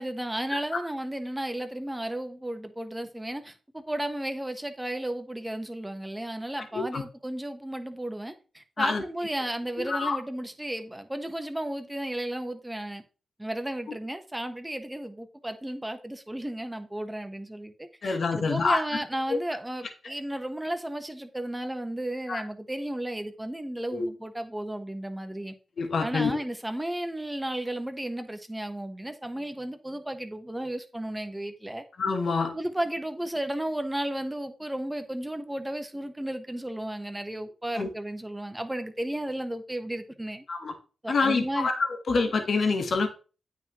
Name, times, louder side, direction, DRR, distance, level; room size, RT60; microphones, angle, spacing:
voice 1, 0.0-13.0 13.4-25.5 26.0-31.8 32.5-40.4 41.0-41.7, right 1 dB, 10° right, 1.1 m, -34 dB
voice 2, 9.8-10.2 18.0-18.8 19.3-19.4 22.3-22.4 23.9-24.1 25.8-26.4 32.0-32.5 37.7-37.9 40.5-40.7 41.1-43.1, left 4 dB, 60° left, 1.3 m, -26 dB
8.9 x 5.7 x 3.0 m
cardioid pair, 70°, 0 cm